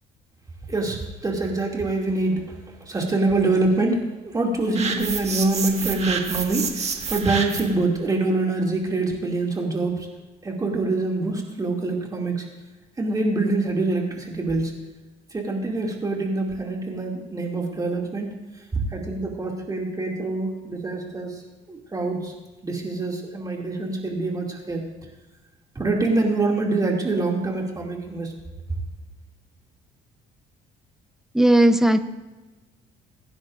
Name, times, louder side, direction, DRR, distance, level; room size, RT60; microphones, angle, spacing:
voice 1, 0.7-2.5 2.8-10.1 10.4-12.5 13.0-14.7 15.3-18.3 18.7-21.4 21.7-22.3 22.6-24.8 25.7-28.3, right 2 dB, 20° right, -1 dB, 2.5 m, -25 dB
sound 1, 4.7-7.8, right 5 dB, 40° right, 1.7 m, -29 dB
voice 2, 31.3-32.0, right 1 dB, ahead, 10 dB, 0.7 m, -16 dB
23.5 x 10.5 x 2.6 m, 1.2 s
cardioid pair, 110°, 17 cm